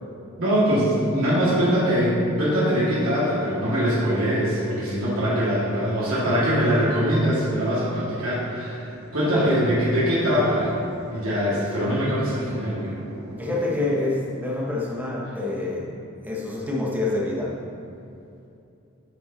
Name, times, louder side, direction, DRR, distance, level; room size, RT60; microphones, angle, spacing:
voice 1, 0.4-8.8 9.1-10.7 11.1-13.0, equal, 85° right, -9 dB, 2.1 m, -22 dB
sound 1, 8.4-14.0, right 1 dB, 50° right, 0.8 m, -43 dB
voice 2, 13.3-15.9 16.2-17.5, left 2 dB, 10° right, -4 dB, 1.1 m, -26 dB
10.5 x 5.8 x 4.0 m, 2.7 s
head